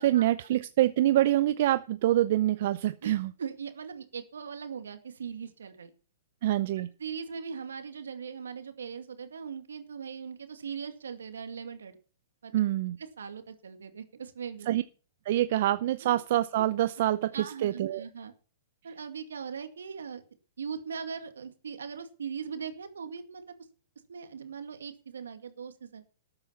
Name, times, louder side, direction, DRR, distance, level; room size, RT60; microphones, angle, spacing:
voice 1, 0.0-3.3 6.4-6.9 12.5-13.0 14.7-14.8 15.3-18.0, right 14 dB, 55° right, 13 dB, 0.6 m, -26 dB
voice 2, 3.4-5.9 6.8-12.0 12.4-12.5 13.2-14.7 16.0-16.1 17.3-18.3 18.8-20.2 20.6-23.6 24.1-26.0, right 6 dB, 85° right, 7 dB, 2.2 m, -40 dB
13.0 x 8.8 x 5.8 m, 0.40 s
hypercardioid pair, 125°, 0 cm